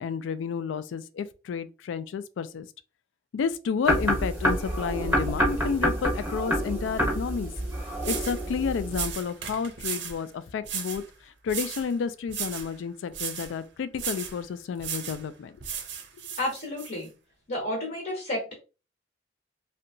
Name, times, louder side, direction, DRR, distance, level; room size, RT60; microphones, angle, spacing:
voice 1, 0.0-2.7 3.3-7.5 8.0-11.0 11.4-15.5, left 6 dB, 80° left, 0.3 m, -31 dB
sound 1, 3.9-9.1, equal, 10° right, 0.8 m, -27 dB
sound 2, 7.6-7.7 8.0-8.4 8.9-10.2 10.6-11.1 11.5-11.9 12.3-12.7 13.1-13.5 14.0-14.4 14.8-15.2 15.6-16.9, right 7 dB, 65° right, 0.5 m, -35 dB
voice 2, 16.4-17.1 17.5-18.5, left 1 dB, 45° left, 0.7 m, -31 dB
2.8 x 2.2 x 2.6 m
head